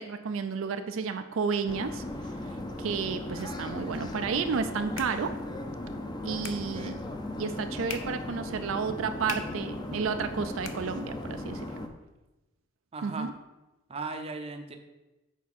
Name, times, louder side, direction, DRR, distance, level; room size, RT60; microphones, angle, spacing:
voice 1, 0.0-2.0 2.8-5.3 6.2-7.1 7.4-11.7 13.0-13.3, right 5 dB, 75° right, 9 dB, 0.4 m, -31 dB
sound 1, 1.7-11.9, left 1 dB, 20° left, 0.5 m, -37 dB
sound 2, 4.4-11.5, left 6 dB, 80° left, 0.6 m, -46 dB
voice 2, 6.5-7.0 12.9-13.3 13.9-14.8, right 3 dB, 30° right, 6 dB, 0.6 m, -38 dB
7.1 x 4.6 x 4.2 m, 1.0 s
head